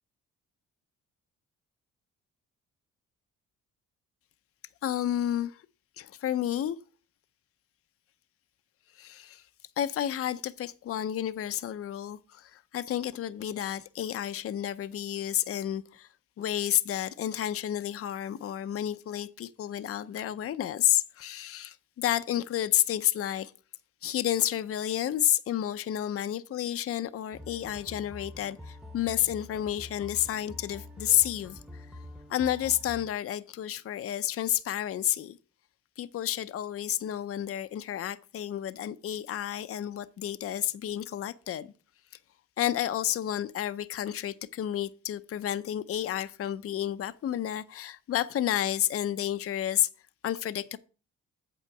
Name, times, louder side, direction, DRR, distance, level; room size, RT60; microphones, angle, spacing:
voice 1, 4.8-5.6 6.0-6.8 9.0-9.4 9.8-16.1 16.4-23.5 24.0-31.9 32.3-35.4 36.0-41.7 42.6-49.9 50.2-50.8, left 11 dB, 50° left, 0.6 m, -30 dB
sound 1, 27.3-33.1, left 1 dB, ahead, 1.0 m, -46 dB
8.3 x 4.3 x 7.1 m
cardioid pair, 90°, 30 cm